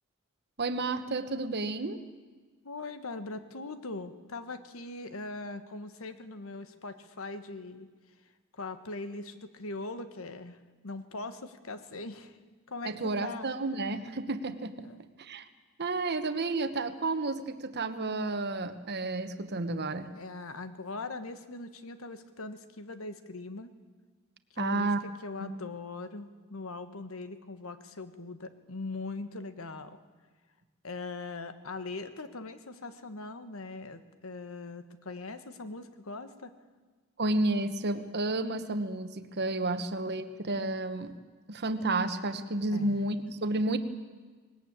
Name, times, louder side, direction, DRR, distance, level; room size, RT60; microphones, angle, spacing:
voice 1, 0.6-2.0 12.8-14.9 15.2-15.5 15.8-20.1 24.6-25.0 25.4-25.6 37.2-41.1 41.5-43.8, right 2 dB, 50° right, 10 dB, 1.2 m, -31 dB
voice 2, 2.6-7.9 8.5-12.4 12.7-13.5 14.8-15.0 20.1-23.7 24.5-24.9 25.2-30.0 30.8-36.5 39.8-39.9 42.7-43.0, left 3 dB, 70° left, 10 dB, 1.3 m, -41 dB
19.5 x 18.5 x 8.8 m, 1.4 s
head